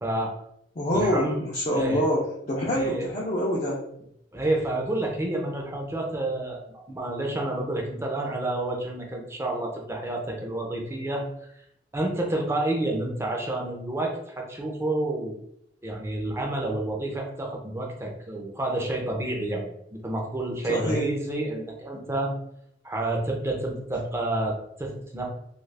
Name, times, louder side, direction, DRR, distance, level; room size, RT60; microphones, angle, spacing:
voice 1, 0.0-0.3 0.9-1.4 1.7-2.1 2.7-3.1 4.3-11.5 11.9-15.3 15.8-22.3 22.8-25.2, right 1 dB, 15° right, 0 dB, 0.5 m, -29 dB
voice 2, 0.8-3.8 20.7-21.1, equal, 40° left, -4 dB, 0.5 m, -26 dB
2.4 x 2.4 x 3.3 m, 0.74 s
head